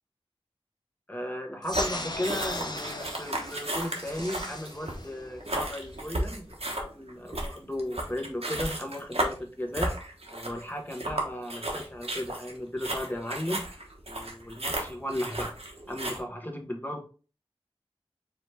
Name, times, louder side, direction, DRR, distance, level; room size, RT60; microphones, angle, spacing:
voice 1, 1.1-15.5 15.9-17.0, left 1 dB, 20° left, 2 dB, 1.1 m, -36 dB
sound 1, 1.6-6.6, left 1 dB, 45° left, 0.7 m, -38 dB
sound 2, 1.7-16.2, right 1 dB, 80° right, 1.0 m, -34 dB
4.9 x 3.2 x 3.2 m, 0.37 s
wide cardioid pair, 40°, 10 cm